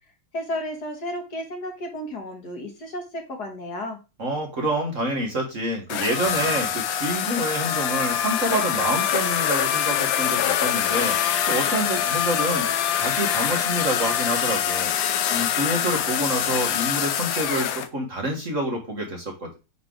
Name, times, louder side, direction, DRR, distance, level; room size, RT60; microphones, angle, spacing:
voice 1, 0.3-4.0, left 1 dB, 55° left, 3 dB, 1.7 m, -33 dB
voice 2, 4.2-12.7 12.9-14.9 15.3-19.6, right 1 dB, 40° right, 0 dB, 1.7 m, -27 dB
sound 1, 5.9-17.9, left 9 dB, 70° left, 1.4 m, -24 dB
9.7 x 3.2 x 3.8 m, 0.28 s
omnidirectional pair, 2.4 m